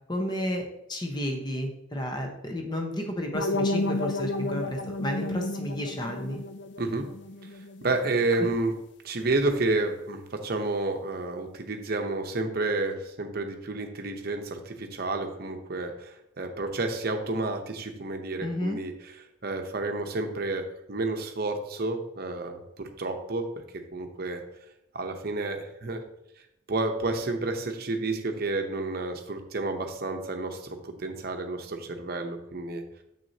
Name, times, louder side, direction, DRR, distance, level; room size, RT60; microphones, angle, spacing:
voice 1, 0.1-6.4 8.4-8.5 18.4-18.8, equal, 20° left, 2 dB, 1.0 m, -32 dB
sound 1, 3.3-8.3, left 2 dB, 60° left, 0.5 m, -32 dB
voice 2, 6.8-7.1 7.4-7.5 7.8-8.7 9.0-18.9 19.4-23.5 23.9-24.4 24.9-26.0 26.7-32.8, right 2 dB, 50° right, 5 dB, 0.8 m, -30 dB
7.1 x 6.2 x 2.8 m, 0.83 s
head